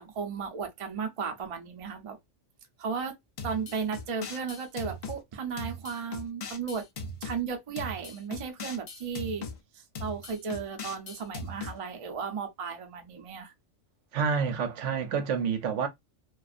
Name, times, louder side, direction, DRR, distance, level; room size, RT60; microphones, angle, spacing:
voice 1, 0.0-2.2 2.8-3.1 3.4-6.8 7.2-9.4 9.7-13.5, right 6 dB, 40° right, 0.5 m, -35 dB
sound 1, 3.4-5.2 5.6-7.4 7.8-9.6 10.0-11.8, left 2 dB, 55° left, 0.5 m, -39 dB
voice 2, 14.1-15.9, right 6 dB, 75° right, 0.9 m, -28 dB
2.4 x 2.3 x 2.4 m
omnidirectional pair, 1.3 m